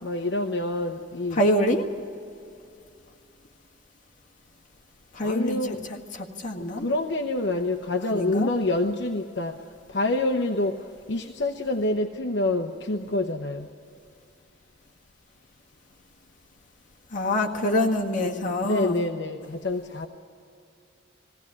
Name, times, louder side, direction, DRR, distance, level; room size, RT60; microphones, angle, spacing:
voice 1, 0.0-1.5 5.2-6.0 6.7-13.7 18.6-20.1, left 2 dB, 65° left, 3 dB, 0.9 m, -27 dB
voice 2, 1.4-1.9 5.1-5.6 5.9-6.9 8.1-8.5 17.1-19.0, left 1 dB, 40° left, 0 dB, 1.8 m, -25 dB
20.5 x 16.5 x 9.8 m, 2.5 s
head